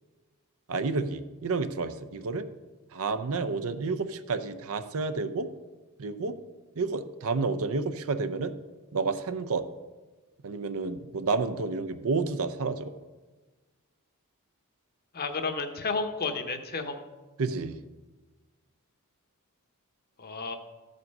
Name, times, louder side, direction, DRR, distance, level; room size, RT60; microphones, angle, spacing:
voice 1, 0.7-2.5 2.9-5.5 6.0-6.3 6.8-8.5 8.9-9.6 10.4-12.9 17.4-17.8, right 4 dB, 65° right, 10 dB, 0.6 m, -30 dB
voice 2, 15.1-17.0 20.2-20.6, left 4 dB, 45° left, 7 dB, 0.9 m, -32 dB
14.0 x 5.3 x 5.4 m, 1.3 s
head